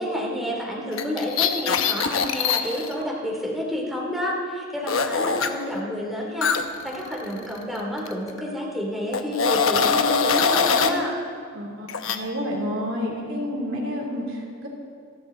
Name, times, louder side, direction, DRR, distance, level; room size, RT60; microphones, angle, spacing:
voice 1, 0.0-6.5 6.8-11.1, left 1 dB, ahead, -4 dB, 2.9 m, -29 dB
sound 1, 0.9-2.9 4.9-5.5 6.4-7.8 8.1-8.3 9.1-11.0 11.9-12.2, left 6 dB, 70° left, 1.0 m, -23 dB
voice 2, 11.5-14.7, equal, 65° right, -2 dB, 3.1 m, -29 dB
28.0 x 11.0 x 3.9 m, 2.3 s
head